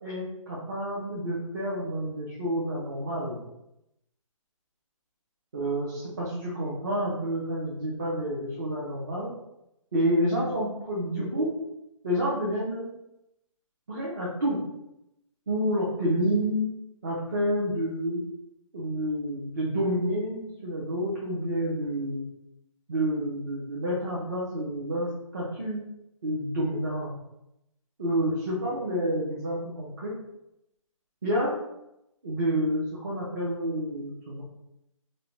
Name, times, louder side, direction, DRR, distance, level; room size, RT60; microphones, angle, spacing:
voice 1, 0.0-3.4 5.5-9.3 9.9-11.5 12.0-12.9 13.9-14.6 15.5-16.7 17.0-18.2 18.7-22.3 22.9-25.1 25.3-25.8 26.2-27.1 28.0-30.2 31.2-31.5 32.2-34.4, equal, 30° right, -6 dB, 0.5 m, -29 dB
2.5 x 2.1 x 2.9 m, 0.84 s
hypercardioid pair, 165°, 18 cm